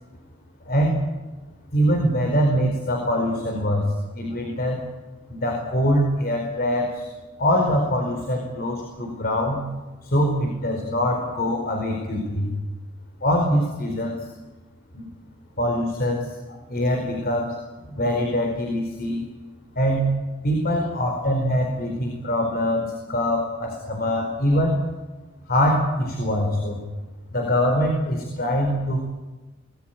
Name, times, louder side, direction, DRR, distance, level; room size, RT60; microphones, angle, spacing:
voice 1, 0.6-1.0 1.7-4.8 5.3-7.1 7.4-9.6 10.0-12.5 13.2-14.3 14.9-15.1 15.6-17.6 17.9-19.2 19.7-20.1 20.4-24.8 25.5-26.8 27.3-29.1, equal, 50° left, 3 dB, 4.7 m, -23 dB
26.0 x 20.0 x 9.2 m, 1.2 s
head